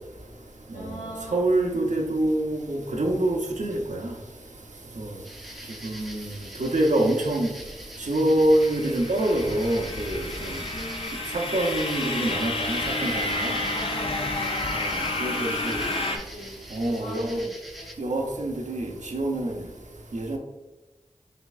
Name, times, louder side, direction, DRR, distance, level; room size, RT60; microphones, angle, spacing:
voice 1, 0.7-1.4 10.7-11.2 13.7-14.9 15.3-16.6 16.8-17.9, equal, 85° left, -3 dB, 0.9 m, -39 dB
voice 2, 1.3-4.0 5.8-6.2 6.6-7.5 8.1-10.2 11.3-13.6 15.2-15.8 16.8-17.4 18.0-18.8 19.1-19.5 20.1-20.4, right 1 dB, 80° right, 1 dB, 0.7 m, -25 dB
sound 1, 5.2-17.9, equal, ahead, 0.5 m, -44 dB
sound 2, 8.6-16.2, left 2 dB, 50° left, 0.6 m, -30 dB
5.2 x 3.4 x 2.4 m, 1.1 s
wide cardioid pair, 40°, 13 cm